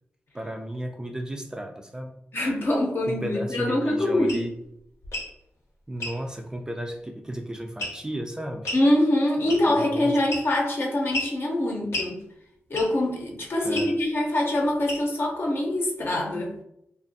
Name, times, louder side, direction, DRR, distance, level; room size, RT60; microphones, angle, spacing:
voice 1, 0.3-2.2 3.1-4.5 5.9-8.7 9.6-10.1 13.6-13.9, right 1 dB, 15° right, 4 dB, 0.3 m, -34 dB
voice 2, 2.3-4.4 8.7-12.2 12.7-16.5, left 1 dB, 55° left, 0 dB, 0.7 m, -24 dB
sound 1, 4.3-4.5 5.0-5.3 6.0-6.2 7.8-8.1 8.6-8.9 9.5-9.8 10.3-10.7 11.1-11.4 11.9-12.1 12.7-13.0 13.7-13.9 14.9-15.2, left 1 dB, 85° left, 0.8 m, -32 dB
2.5 x 2.3 x 2.6 m, 0.78 s
cardioid pair, 60°, 5 cm